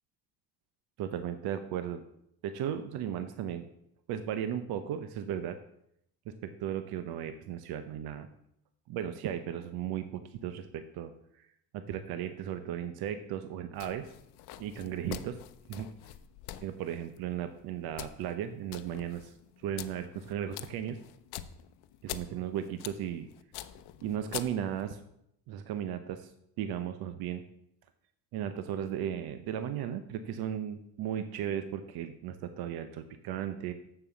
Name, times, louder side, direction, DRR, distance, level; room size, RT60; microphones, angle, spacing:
voice 1, 1.0-2.0 2.4-3.7 4.1-5.6 6.3-8.3 8.9-11.1 11.7-14.1 14.6-15.4 15.7-15.9 16.6-19.3 19.6-21.0 22.0-23.3 24.0-25.0 25.5-26.3 26.6-27.4 28.3-33.7, right 9 dB, 75° right, 10 dB, 0.8 m, -36 dB
sound 1, 13.7-24.9, left 13 dB, 85° left, 0.7 m, -46 dB
7.1 x 7.0 x 6.9 m, 0.76 s
cardioid pair, 140°, 38 cm